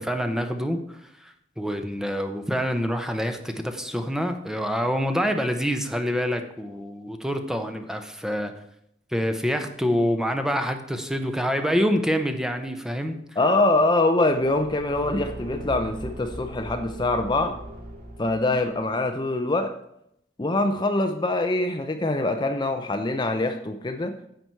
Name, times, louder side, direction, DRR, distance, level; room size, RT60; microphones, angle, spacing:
voice 1, 0.0-8.5 9.1-13.2, equal, 5° right, 6 dB, 0.8 m, -26 dB
voice 2, 13.4-17.6 18.2-19.8 20.4-24.1, left 2 dB, 25° left, 6 dB, 0.6 m, -24 dB
Car / Engine, 14.3-18.8, equal, 60° right, 2.0 m, -39 dB
9.8 x 7.8 x 4.6 m, 0.75 s
head